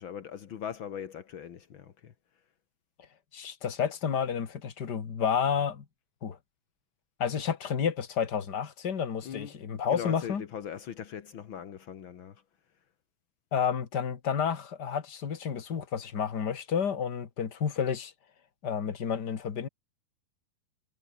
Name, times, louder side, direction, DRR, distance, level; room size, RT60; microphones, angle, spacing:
voice 1, 0.0-2.1 9.2-9.6 9.9-12.4, left 8 dB, 65° left, 1.2 m, -40 dB
voice 2, 3.3-5.8 6.2-6.4 7.2-10.4 13.5-18.1 18.6-19.7, left 7 dB, 40° left, 1.6 m, -30 dB
omnidirectional pair, 4.4 m